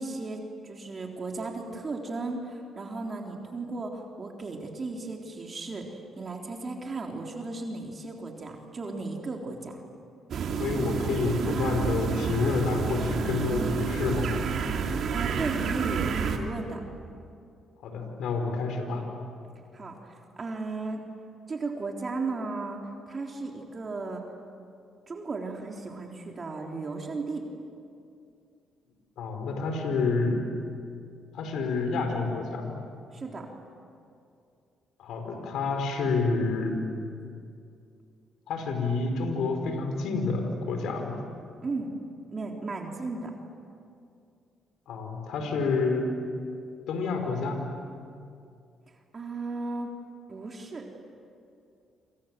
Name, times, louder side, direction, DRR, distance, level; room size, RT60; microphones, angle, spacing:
voice 1, 0.0-5.9 6.2-9.8 15.1-16.8 19.7-21.1 21.5-24.2 25.1-27.4 33.1-33.5 41.6-42.0 42.3-43.3 49.1-49.9 50.3-50.9, right 3 dB, 35° right, 1 dB, 3.7 m, -35 dB
sound 1, 10.3-16.4, right 6 dB, 65° right, 2.8 m, -29 dB
voice 2, 10.6-14.3 17.8-19.1 29.2-30.4 31.3-32.7 35.0-36.8 38.5-41.2 44.9-46.0 46.9-47.7, left 4 dB, 80° left, 4 dB, 4.9 m, -28 dB
28.0 x 27.0 x 7.7 m, 2.4 s
cardioid pair, 90°, 0 cm